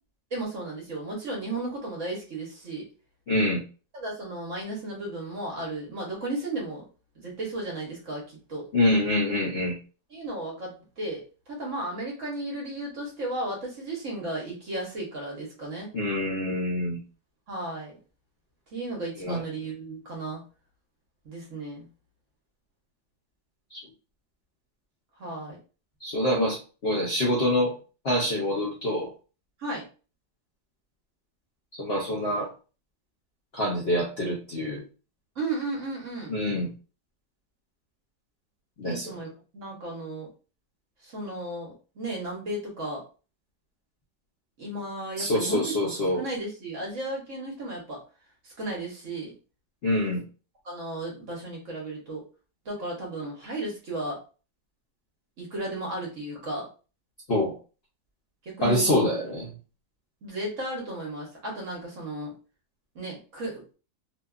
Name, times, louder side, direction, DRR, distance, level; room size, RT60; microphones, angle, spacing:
voice 1, 0.3-2.9 3.9-6.8 7.2-8.7 10.1-15.9 17.5-17.9 18.7-20.4 21.2-21.8 25.2-25.6 29.6-29.8 35.4-36.3 38.8-39.3 39.5-40.3 41.0-43.0 44.6-45.7 46.2-48.0 48.4-49.3 50.6-52.2 52.6-54.2 55.4-56.7 58.5-59.0 60.2-62.3 62.9-63.6, right 2 dB, 55° right, -2 dB, 1.0 m, -34 dB
voice 2, 3.3-3.6 8.7-9.8 15.9-17.0 19.2-19.4 23.7-23.8 26.0-27.7 28.0-29.1 31.8-32.5 33.5-34.8 36.3-36.7 38.8-39.1 45.2-46.2 49.8-50.2 57.3-57.5 58.6-59.5, left 1 dB, 60° left, -4 dB, 0.6 m, -25 dB
3.0 x 2.2 x 2.3 m, 0.35 s
omnidirectional pair, 1.9 m